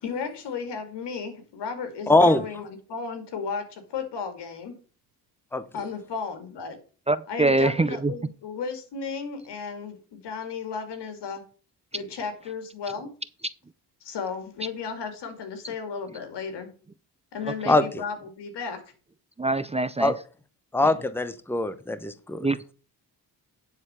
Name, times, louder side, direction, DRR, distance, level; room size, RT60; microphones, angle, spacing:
voice 1, 0.0-4.8 5.7-6.8 7.3-11.4 11.9-13.1 14.0-16.7 17.3-18.8, left 5 dB, 90° left, 2.3 m, -34 dB
voice 2, 2.1-2.4 5.5-5.6 17.7-17.8 20.0-20.1 20.7-22.5, left 2 dB, 5° left, 0.8 m, -21 dB
voice 3, 7.1-8.1 11.9-12.0 15.6-15.7 16.1-16.2 17.4-17.8 19.4-20.2 20.8-21.0 22.4-22.7, right 2 dB, 15° right, 0.5 m, -25 dB
9.8 x 4.3 x 6.8 m
cardioid pair, 90°, 40 cm